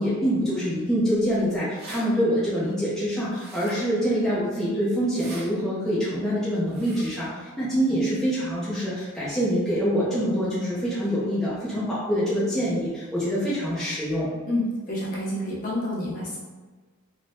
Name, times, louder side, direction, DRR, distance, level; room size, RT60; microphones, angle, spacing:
voice 1, 0.0-14.3, equal, ahead, -10 dB, 0.5 m, -25 dB
sound 1, 1.8-2.0 3.3-4.0 5.0-5.5 6.7-7.2, right 2 dB, 45° right, 0.7 m, -43 dB
voice 2, 14.4-16.4, left 1 dB, 35° left, -6 dB, 0.8 m, -28 dB
3.1 x 2.2 x 2.6 m, 1.3 s
head